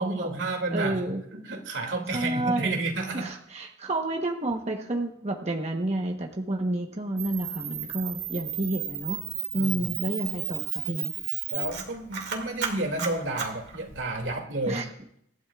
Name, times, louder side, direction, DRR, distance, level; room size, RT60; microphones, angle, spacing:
voice 1, 0.0-1.0 1.3-3.3 9.5-10.0 11.5-14.8, right 2 dB, 90° right, 3 dB, 2.4 m, -31 dB
voice 2, 0.7-1.2 2.1-2.8 3.1-9.2 9.5-11.1 14.7-14.8, right 2 dB, 35° right, 2 dB, 1.0 m, -30 dB
Camera, 7.2-14.3, right 9 dB, 60° right, 2.3 m, -34 dB
24.5 x 12.0 x 2.4 m, 0.71 s
head